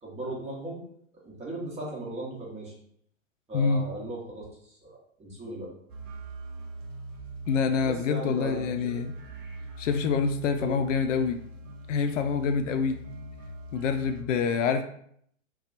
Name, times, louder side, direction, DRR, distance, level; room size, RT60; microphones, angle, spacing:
voice 1, 0.0-0.9 1.2-2.7 3.5-5.7 7.8-9.0 10.6-10.8, right 2 dB, 15° right, -4 dB, 1.1 m, -37 dB
sound 1, 5.9-14.2, right 2 dB, 75° right, 0.7 m, -42 dB
voice 2, 7.5-9.1 9.8-11.4 11.9-13.0 13.7-14.8, left 5 dB, 70° left, 8 dB, 0.5 m, -26 dB
2.8 x 2.3 x 3.9 m, 0.66 s
hypercardioid pair, 110°, 38 cm